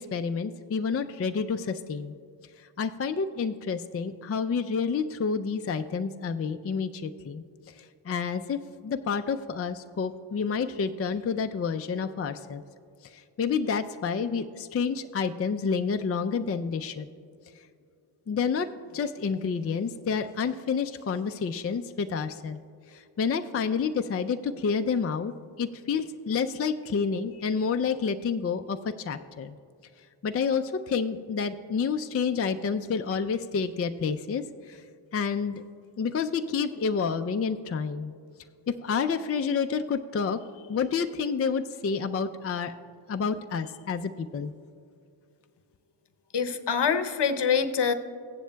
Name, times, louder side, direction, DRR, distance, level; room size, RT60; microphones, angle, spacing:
voice 1, 0.0-2.1 2.6-7.4 7.7-12.6 13.0-17.1 18.3-22.6 22.9-29.6 30.2-34.8 35.1-35.6 36.0-38.1 38.7-42.7 43.1-44.5, left 5 dB, 30° left, 7 dB, 0.4 m, -29 dB
voice 2, 46.3-47.9, left 6 dB, 55° left, 9 dB, 0.8 m, -25 dB
15.5 x 10.0 x 2.3 m, 2.4 s
cardioid pair, 40°, 48 cm